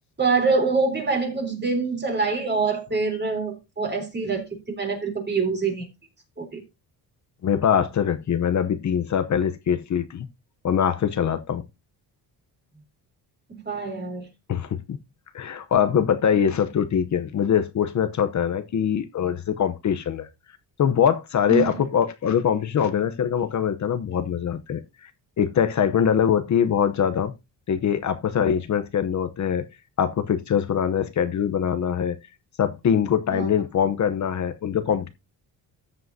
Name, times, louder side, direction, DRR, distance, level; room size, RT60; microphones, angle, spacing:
voice 1, 0.2-5.9 6.4-6.6 13.5-14.3 21.5-21.8 33.3-33.5, right 4 dB, 25° right, 3.6 m, -25 dB
voice 2, 7.4-10.3 10.6-11.6 14.5-15.0 15.3-20.3 20.8-25.1 25.4-27.3 27.7-29.6 30.0-32.1 32.6-35.1, left 8 dB, 45° left, 0.9 m, -23 dB
14.0 x 7.6 x 2.7 m
cardioid pair, 135°, 39 cm